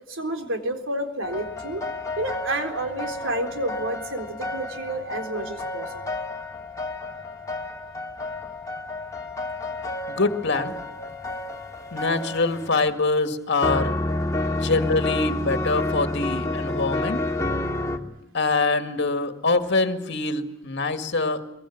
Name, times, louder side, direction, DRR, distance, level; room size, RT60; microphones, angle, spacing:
voice 1, 0.0-1.8 2.2-6.1, right 1 dB, 65° right, 4 dB, 4.0 m, -30 dB
sound 1, 1.2-13.1 13.6-18.0, left 2 dB, 15° left, 2.4 m, -30 dB
voice 2, 10.1-10.7 11.9-13.9 14.5-17.2 18.3-21.4, left 3 dB, 60° left, 7 dB, 2.0 m, -24 dB
23.0 x 22.5 x 8.6 m, 0.86 s
head